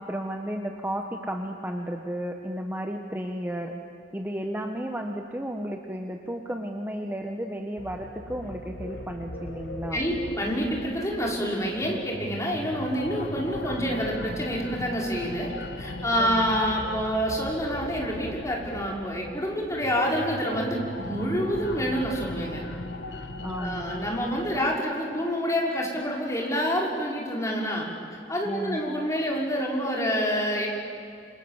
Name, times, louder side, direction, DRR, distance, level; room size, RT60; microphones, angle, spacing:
voice 1, 0.0-3.7 4.1-10.0 16.2-16.6 23.4-24.0 28.4-28.8, equal, 10° right, 3 dB, 1.3 m, -33 dB
sound 1, 7.8-24.8, left 2 dB, 85° left, 1.5 m, -38 dB
voice 2, 9.9-15.5 15.8-22.6 23.6-27.9 28.3-30.7, equal, 20° left, -2 dB, 5.4 m, -27 dB
28.0 x 26.5 x 7.5 m, 2.4 s
head